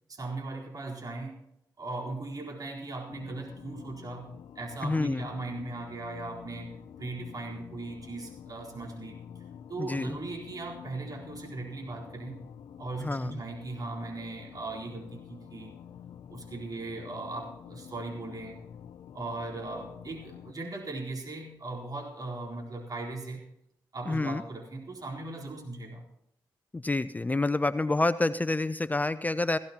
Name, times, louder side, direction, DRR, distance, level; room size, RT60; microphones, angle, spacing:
voice 1, 0.1-1.4 1.8-6.7 7.0-9.3 9.7-12.4 12.8-15.8 16.3-18.6 19.1-23.4 23.9-26.0, right 2 dB, 50° right, -2 dB, 4.0 m, -38 dB
sound 1, 3.1-20.5, left 8 dB, 70° left, 0.6 m, -48 dB
voice 2, 4.8-5.3 9.8-10.2 13.0-13.4 24.1-24.4 26.7-29.6, left 2 dB, 20° left, 14 dB, 0.5 m, -28 dB
17.0 x 16.0 x 2.9 m, 0.79 s
supercardioid pair, 55°, 8 cm